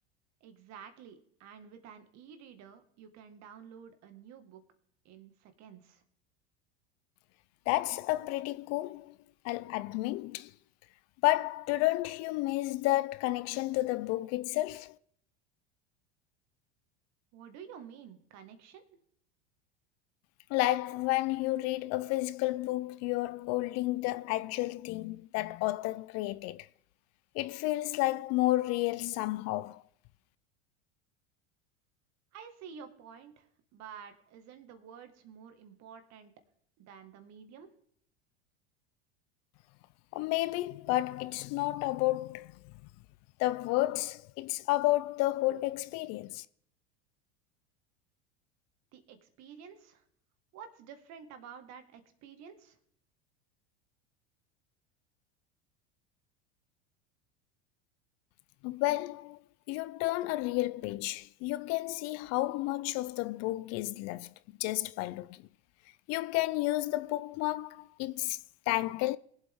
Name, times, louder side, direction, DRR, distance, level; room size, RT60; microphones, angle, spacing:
voice 1, 0.4-4.6 5.1-6.0 17.3-18.8 32.3-36.3 36.8-37.7 48.9-50.0 50.5-52.8, right 7 dB, 55° right, 1.9 m, -50 dB
voice 2, 7.7-9.2 9.4-10.5 11.2-15.0 20.5-26.7 27.3-29.8 40.1-42.6 43.4-46.5 58.6-59.4 59.7-64.3 64.6-65.4 66.1-68.4 68.7-69.2, left 18 dB, 50° left, 0.5 m, -31 dB
21.0 x 7.9 x 3.7 m
hypercardioid pair, 95°, 33 cm